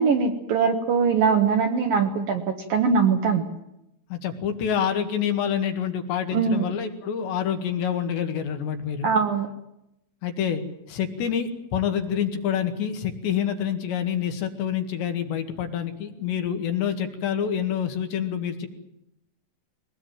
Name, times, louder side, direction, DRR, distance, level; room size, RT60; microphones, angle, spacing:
voice 1, 0.0-2.4 2.7-3.4 6.3-6.7 9.0-9.5, right 5 dB, 60° right, 5 dB, 2.5 m, -21 dB
voice 2, 4.1-9.1 10.2-18.7, left 8 dB, 65° left, 6 dB, 3.8 m, -27 dB
22.0 x 19.5 x 9.1 m, 0.84 s
omnidirectional pair, 5.7 m